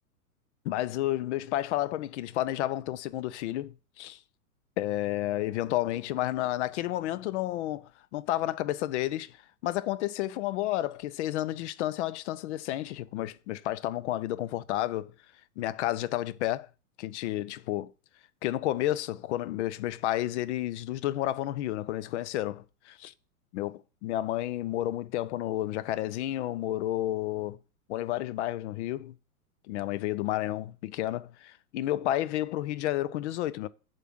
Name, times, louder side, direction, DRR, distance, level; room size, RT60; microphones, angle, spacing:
voice 1, 0.6-4.2 4.8-9.4 9.6-15.1 15.6-16.7 17.0-17.9 18.4-23.1 23.5-27.6 27.9-29.2 29.7-33.7, left 14 dB, 50° left, 0.7 m, -31 dB
8.2 x 4.9 x 6.2 m
hypercardioid pair, 105°, 46 cm